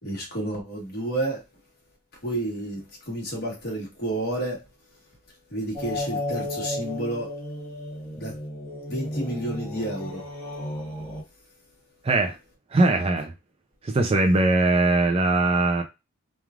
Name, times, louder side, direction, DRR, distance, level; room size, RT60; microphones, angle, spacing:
voice 1, 0.0-1.4 2.2-4.6 5.5-7.3 8.1-8.3 8.9-10.3, right 1 dB, 45° left, 1.3 m, -30 dB
sound 1, 5.7-11.2, left 1 dB, 10° left, 1.0 m, -33 dB
voice 2, 12.0-12.4 12.7-13.3 13.8-15.8, right 2 dB, 25° right, 0.3 m, -21 dB
3.1 x 2.3 x 2.4 m
head